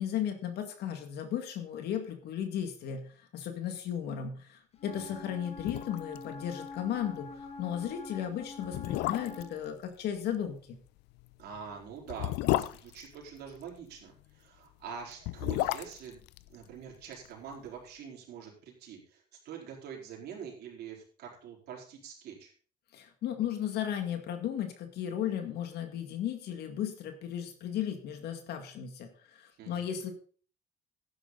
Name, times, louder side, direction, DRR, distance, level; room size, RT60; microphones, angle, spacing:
voice 1, 0.0-10.8 22.9-30.1, left 9 dB, 75° left, 6 dB, 2.0 m, -35 dB
Wind instrument woodwind instrument, 4.8-9.6, left 3 dB, 40° left, 2.1 m, -45 dB
sound 1, 5.2-5.3 5.6-6.2 6.5-6.6 7.0-7.2 7.9-8.0 8.6-9.6 11.1-13.8 15.0-17.3 17.5-17.6, left 17 dB, 90° left, 0.5 m, -33 dB
voice 2, 11.4-16.2 16.5-22.5 29.6-29.8, right 7 dB, 70° right, -1 dB, 4.5 m, -45 dB
12.5 x 10.0 x 4.0 m, 0.41 s
cardioid pair, 110°, 17 cm